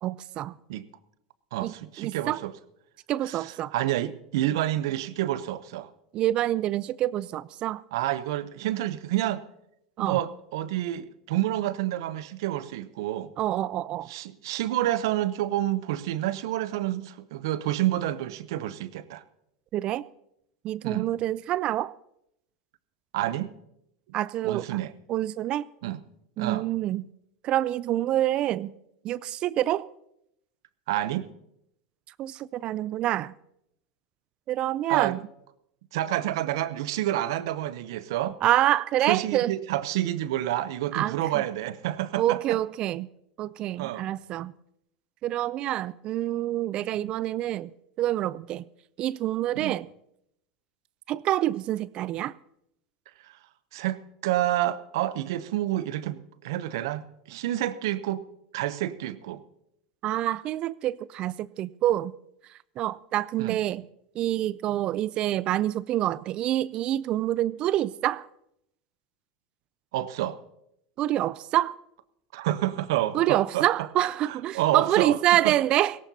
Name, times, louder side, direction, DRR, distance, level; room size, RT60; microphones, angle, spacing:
voice 1, 0.0-0.6 1.6-2.4 3.1-3.7 6.1-7.8 10.0-10.2 13.4-14.1 19.7-20.0 20.6-21.9 24.1-24.7 25.1-25.7 26.4-27.0 27.4-28.7 29.0-29.9 32.2-33.3 34.5-35.2 38.4-39.5 40.9-41.4 42.1-43.1 43.4-44.5 45.2-47.7 48.0-48.6 49.0-49.9 51.1-52.3 60.0-62.1 62.8-63.8 64.2-68.3 71.0-71.7 73.1-76.0, right 13 dB, 45° right, 0.4 m, -27 dB
voice 2, 1.5-2.5 3.2-5.9 7.9-9.4 10.0-13.3 14.1-19.2 20.8-21.1 23.1-23.5 24.4-24.9 25.8-26.0 26.4-26.7 30.9-31.3 34.9-35.2 35.9-38.4 39.1-42.6 43.8-44.1 46.9-47.1 49.5-49.7 53.3-53.4 53.7-58.2 58.5-59.4 63.4-63.6 69.9-70.4 72.3-73.7 74.3-75.2 75.4-75.5, right 14 dB, 70° right, 0.8 m, -29 dB
17.5 x 17.5 x 2.8 m
hypercardioid pair, 90°, 2 cm